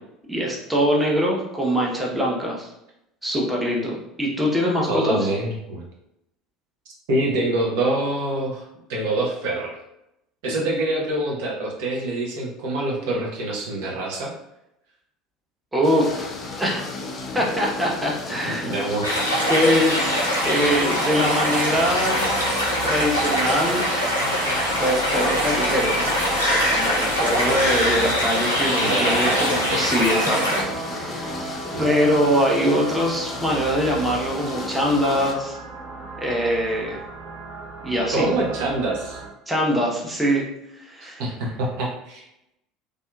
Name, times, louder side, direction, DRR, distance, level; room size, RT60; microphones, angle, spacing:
voice 1, 0.3-2.7 3.2-5.3 15.7-16.3 16.6-16.9 17.3-18.7 19.5-20.2 20.4-22.5 22.8-23.9 24.8-26.2 26.4-31.4 31.8-35.6 36.2-37.0 37.8-38.3 39.5-40.4 40.8-41.2, equal, 10° right, -3 dB, 0.7 m, -23 dB
voice 2, 4.9-5.8 7.1-8.6 8.9-9.8 10.4-14.3 18.4-19.2 28.8-29.9 31.7-31.9 38.1-39.2 41.2-42.2, right 2 dB, 60° right, -2 dB, 0.6 m, -25 dB
sound 1, 15.8-35.3, left 3 dB, 30° left, 0.5 m, -34 dB
sound 2, 19.0-30.6, equal, 90° left, 0.5 m, -23 dB
sound 3, 20.1-39.3, right 4 dB, 45° right, 1.2 m, -36 dB
2.7 x 2.4 x 2.3 m, 0.85 s
figure-of-eight pair, 65°, 0 cm